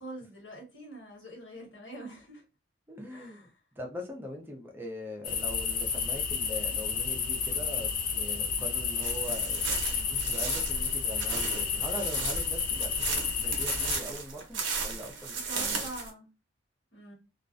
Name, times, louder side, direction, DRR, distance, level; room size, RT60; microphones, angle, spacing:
voice 1, 0.0-2.4 3.1-3.6 15.3-16.3 16.9-17.1, right 1 dB, 75° left, 1.2 m, -44 dB
voice 2, 2.9-3.5 3.8-15.9, equal, 10° right, 0.5 m, -42 dB
sound 1, 5.2-14.0, left 6 dB, 45° left, 0.4 m, -31 dB
sound 2, 9.0-16.1, right 5 dB, 80° right, 0.7 m, -35 dB
2.4 x 2.1 x 2.4 m
head